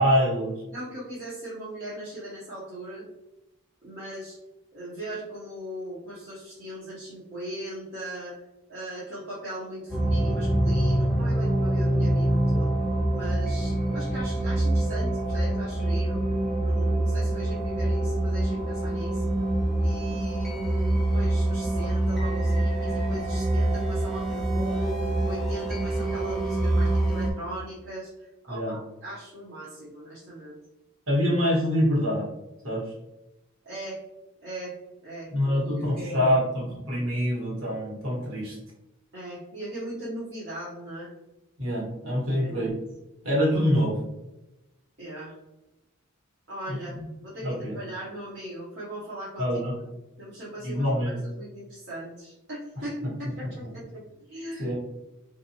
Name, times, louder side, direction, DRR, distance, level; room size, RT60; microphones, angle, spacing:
voice 1, 0.0-0.5 28.5-28.7 31.1-32.3 32.6-32.8 35.3-38.6 41.6-42.7 43.2-44.0 46.7-47.0 47.4-47.8 49.4-49.7 50.6-51.2 54.6-54.7, equal, 70° right, -5 dB, 1.5 m, -25 dB
voice 2, 0.7-3.1 3.8-4.4 4.7-8.4 8.7-12.7 13.1-16.2 16.6-19.2 19.8-30.6 33.6-34.0 34.4-34.7 35.0-36.4 39.1-41.1 42.4-42.8 45.0-45.4 46.5-49.6 50.2-53.9 54.2-54.7, right 1 dB, 55° right, -10 dB, 0.9 m, -39 dB
sound 1, 9.9-27.3, right 1 dB, ahead, 0.6 m, -25 dB
3.5 x 2.6 x 2.8 m, 0.99 s
head